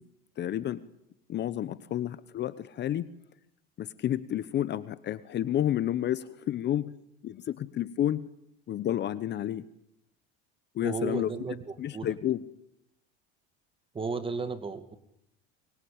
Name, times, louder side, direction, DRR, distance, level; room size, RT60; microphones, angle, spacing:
voice 1, 0.4-0.8 1.3-3.1 3.8-6.9 7.2-8.3 8.7-9.6 10.7-11.3 11.8-12.4, left 11 dB, 35° left, 15 dB, 0.9 m, -30 dB
voice 2, 10.8-12.1 13.9-15.0, right 4 dB, 20° right, 10 dB, 2.2 m, -34 dB
24.0 x 21.0 x 8.8 m, 0.81 s
cardioid pair, 130°, 29 cm